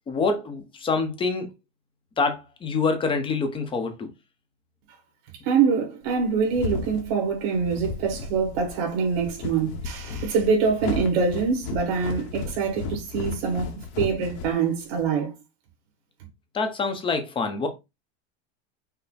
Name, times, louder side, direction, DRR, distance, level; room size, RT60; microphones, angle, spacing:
voice 1, 0.1-1.5 2.2-4.1 16.5-17.7, left 4 dB, 15° left, 0.7 m, -26 dB
voice 2, 5.4-15.3, right 5 dB, 60° right, 2.3 m, -24 dB
sound 1, 6.1-15.0, left 5 dB, 50° left, 1.0 m, -34 dB
5.6 x 2.1 x 4.0 m
cardioid pair, 165°, 33 cm